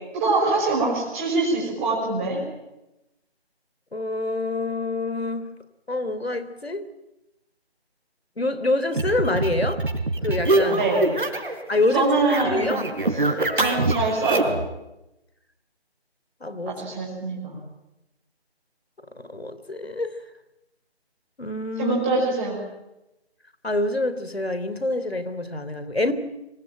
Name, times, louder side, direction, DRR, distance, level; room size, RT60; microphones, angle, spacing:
voice 1, 0.1-2.4 10.7-11.0 11.9-12.8 13.2-14.5 16.7-17.6 21.8-22.6, right 3 dB, 10° right, -4 dB, 5.7 m, -24 dB
voice 2, 3.9-5.5 5.9-6.9 8.4-9.8 10.2-10.9 11.7-12.1 12.4-12.8 16.4-16.8 19.2-20.2 21.4-22.0 23.6-26.1, left 2 dB, 70° left, 12 dB, 3.5 m, -26 dB
sound 1, 8.9-11.6 11.9-14.7, right 2 dB, 50° right, 4.4 m, -24 dB
25.0 x 24.5 x 9.1 m, 0.91 s
figure-of-eight pair, 160°, 32 cm